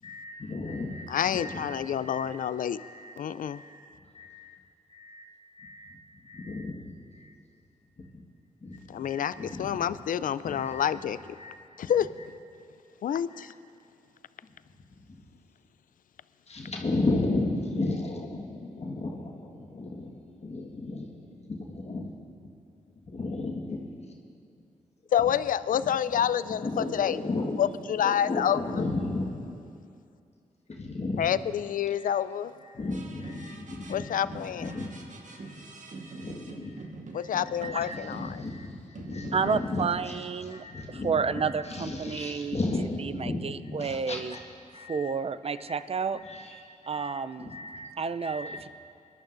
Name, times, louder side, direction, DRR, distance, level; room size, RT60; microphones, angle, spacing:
voice 1, 0.0-1.8 2.0-2.4 2.7-3.2 3.5-3.9 4.1-4.6 4.9-5.3 5.6-7.4 8.1-8.2 8.6-9.8 10.4-10.9 11.3-11.6 11.8-11.9 13.3-13.5 15.1-15.2 16.5-22.1 22.4-22.5 23.1-24.1 25.2-25.3 25.7-29.7 30.7-31.3 31.9-32.2 32.6-34.9 35.3-35.6 35.9-44.4 44.7-45.1 45.7-45.8 46.1-47.9 48.2-48.6, left 2 dB, 45° left, -1 dB, 1.6 m, -35 dB
voice 2, 1.1-2.8 3.2-3.6 8.9-11.2 11.8-12.1 13.0-13.5 25.1-27.2 27.6-28.6 31.2-32.5 33.9-34.7 37.1-38.4, left 9 dB, 65° left, 15 dB, 0.4 m, -28 dB
sound 1, 32.9-34.0 34.3-38.7 39.0-40.2, right 3 dB, 60° right, 1.4 m, -44 dB
voice 3, 37.6-38.0 39.3-42.6 43.0-44.4 44.7-46.2 46.9-47.6 48.0-48.7, right 5 dB, 40° right, 14 dB, 0.5 m, -31 dB
21.5 x 11.5 x 2.6 m, 2.5 s
supercardioid pair, 40°, 15 cm